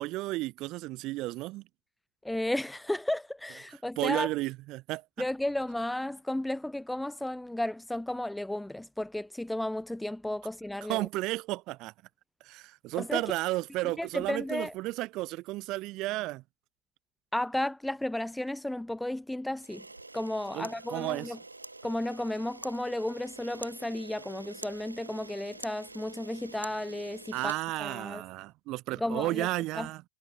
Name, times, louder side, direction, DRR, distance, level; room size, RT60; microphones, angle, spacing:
voice 1, 0.0-1.6 4.0-5.0 10.9-11.9 12.4-16.4 20.5-21.3 27.3-30.0, right 19 dB, 35° right, 0.8 m, -33 dB
voice 2, 2.2-4.3 5.2-11.1 13.0-13.2 13.8-14.7 17.3-19.9 20.1-21.4 21.8-27.5 27.8-28.2 29.0-29.5 29.7-29.9, left 1 dB, 5° left, 0.5 m, -33 dB
Camera, 19.6-28.3, right 2 dB, 85° right, 3.5 m, -47 dB
figure-of-eight pair, 105°, 0 cm